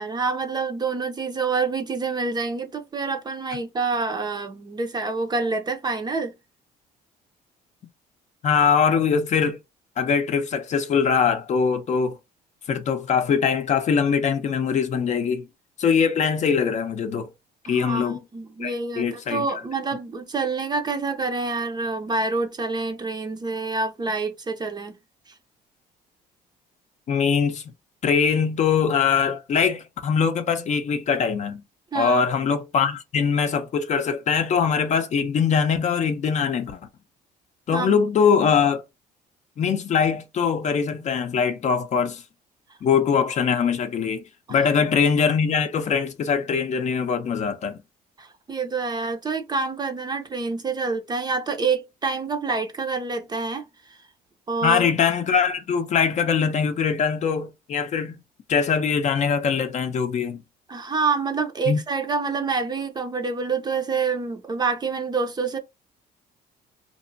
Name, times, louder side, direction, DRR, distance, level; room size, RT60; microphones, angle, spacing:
voice 1, 0.0-6.3 17.7-25.0 31.9-32.2 37.7-38.0 44.5-44.6 48.2-54.0 54.5-54.9 60.7-65.6, right 4 dB, 25° right, 0.6 m, -27 dB
voice 2, 8.4-9.6 10.0-12.2 12.7-15.5 15.8-17.3 17.7-18.2 18.6-19.5 27.1-27.6 28.0-31.6 31.9-36.8 37.7-38.8 39.6-42.2 42.8-44.2 44.5-47.8 54.6-58.2 58.5-60.4 61.7-61.8, left 6 dB, 45° left, 0.6 m, -22 dB
2.9 x 2.1 x 2.6 m
cardioid pair, 110°, 17 cm